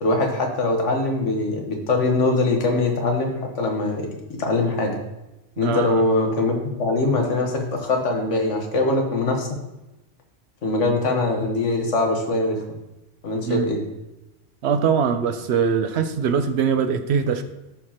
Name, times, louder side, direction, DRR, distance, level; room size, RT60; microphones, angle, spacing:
voice 1, 0.0-4.1 4.4-5.0 5.6-9.5 10.6-12.6 13.2-13.8, left 2 dB, 90° left, 2 dB, 1.6 m, -22 dB
voice 2, 5.6-6.0 13.4-13.7 14.6-17.4, right 6 dB, 70° right, 9 dB, 0.9 m, -22 dB
12.5 x 4.8 x 2.9 m, 0.97 s
omnidirectional pair, 1.2 m